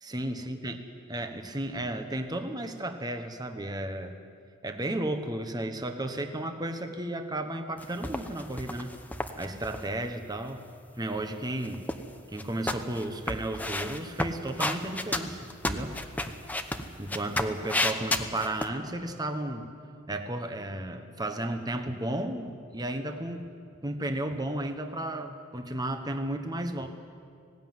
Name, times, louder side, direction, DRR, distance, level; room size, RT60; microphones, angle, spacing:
voice 1, 0.0-0.8 1.1-4.2 4.6-8.9 9.4-10.6 11.0-11.9 12.3-16.0 17.0-19.7 20.1-23.4 23.8-26.9, right 1 dB, 20° right, 6 dB, 1.2 m, -33 dB
sound 1, 7.8-9.8 11.5-12.1 12.4-18.7, left 1 dB, 10° left, 1.0 m, -31 dB
19.0 x 17.5 x 9.5 m, 2.2 s
head